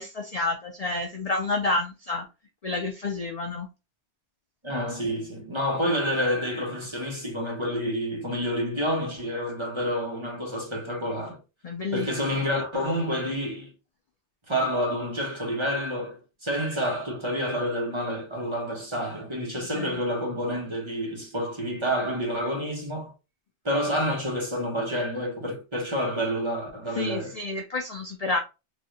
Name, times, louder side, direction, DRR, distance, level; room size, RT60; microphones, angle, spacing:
voice 1, 0.0-2.3 2.6-3.7 11.6-12.4 19.7-20.0 26.9-28.4, left 3 dB, 50° left, 0.4 m, -29 dB
voice 2, 4.6-11.4 11.9-13.7 14.5-23.1 23.6-27.3, equal, 25° right, 1.0 m, -28 dB
3.2 x 2.7 x 2.7 m
omnidirectional pair, 1.1 m